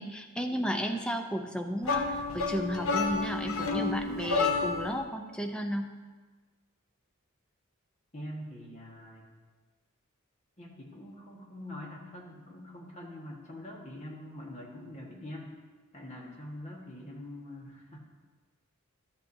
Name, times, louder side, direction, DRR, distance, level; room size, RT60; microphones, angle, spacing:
voice 1, 0.0-5.9, equal, 5° left, 4 dB, 0.6 m, -33 dB
sound 1, 1.8-5.0, left 4 dB, 65° left, 0.9 m, -30 dB
voice 2, 8.1-9.3 10.6-15.6 15.9-18.0, left 1 dB, 30° left, -2 dB, 1.5 m, -44 dB
12.5 x 8.3 x 2.7 m, 1.4 s
head